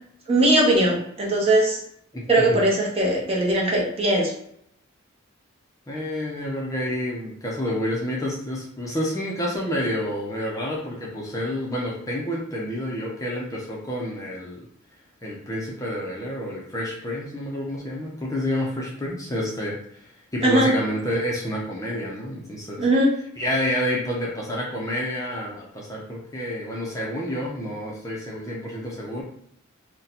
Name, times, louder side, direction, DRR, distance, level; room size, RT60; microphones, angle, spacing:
voice 1, 0.3-1.8 2.3-4.3 20.4-20.7 22.8-23.1, right 1 dB, 30° right, -3 dB, 0.8 m, -20 dB
voice 2, 2.1-2.6 5.9-14.6 15.2-20.0 20.3-22.9 23.4-29.2, equal, 15° left, -4 dB, 0.6 m, -29 dB
2.7 x 2.2 x 4.1 m, 0.68 s
head